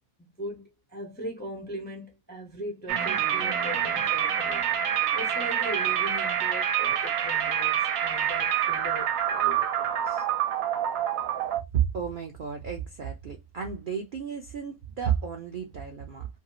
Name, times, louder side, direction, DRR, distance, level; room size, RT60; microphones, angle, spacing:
voice 1, 0.2-4.7 5.1-10.2, right 1 dB, 10° left, 0.4 m, -39 dB
sound 1, 2.9-11.6, right 9 dB, 75° right, 1.0 m, -27 dB
voice 2, 11.7-16.3, right 8 dB, 60° right, 0.5 m, -31 dB
2.7 x 2.4 x 2.8 m
omnidirectional pair, 1.5 m